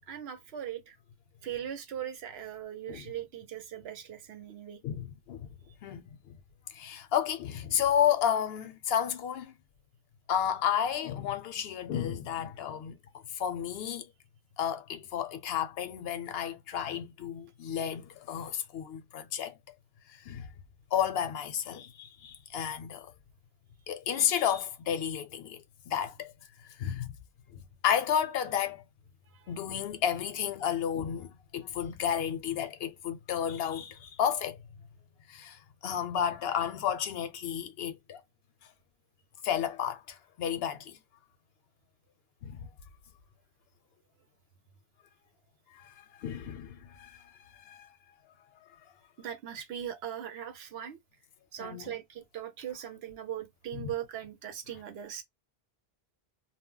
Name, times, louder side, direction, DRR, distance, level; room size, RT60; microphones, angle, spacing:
voice 1, 0.1-1.0 1.4-4.8 29.3-29.4 49.2-51.0 51.5-55.2, right 10 dB, 80° right, 0.9 m, -39 dB
voice 2, 4.8-5.5 5.8-6.4 6.7-9.5 10.3-13.0 13.3-14.1 14.6-19.6 20.1-20.5 20.9-23.1 23.9-26.3 26.6-27.1 27.5-28.8 29.5-34.6 35.3-38.2 39.4-41.0 42.4-42.6 45.7-47.9 51.6-51.9 53.7-53.9, left 9 dB, 75° left, 0.8 m, -32 dB
2.2 x 2.0 x 3.6 m
omnidirectional pair, 1.0 m